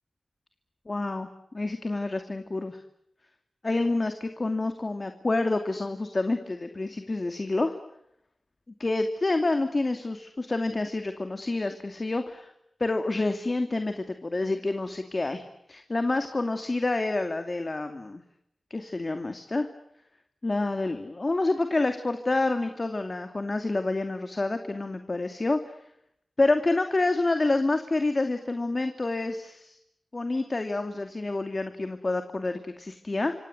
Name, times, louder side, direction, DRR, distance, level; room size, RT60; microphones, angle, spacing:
voice 1, 0.9-1.3 1.5-2.8 3.6-7.8 8.8-12.5 12.8-15.4 15.7-18.2 18.7-19.7 20.4-25.6 26.4-29.8 30.1-33.4, left 2 dB, 40° left, 7 dB, 2.5 m, -28 dB
27.5 x 25.5 x 8.0 m, 0.77 s
wide cardioid pair, 65°, 0 cm